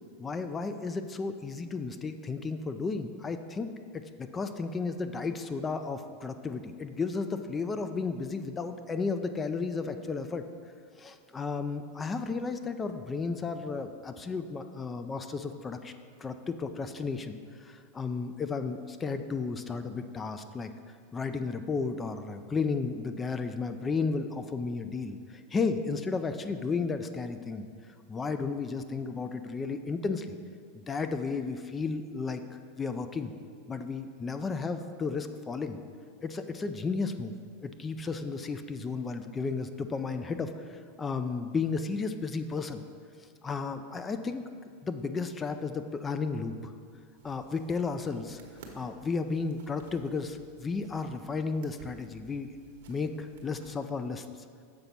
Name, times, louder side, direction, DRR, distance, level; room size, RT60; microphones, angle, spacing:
voice 1, 0.2-10.4 11.0-15.9 16.2-20.7 21.1-30.3 30.7-33.3 33.7-35.8 36.2-37.3 37.6-42.8 43.4-44.4 44.8-46.7 47.2-48.4 48.7-52.5 52.9-54.3, left 4 dB, 20° left, 9 dB, 0.4 m, -33 dB
sound 1, 47.2-53.8, right 5 dB, 75° right, 1.1 m, -54 dB
6.9 x 4.0 x 5.8 m, 2.1 s
hypercardioid pair, 115°, 0 cm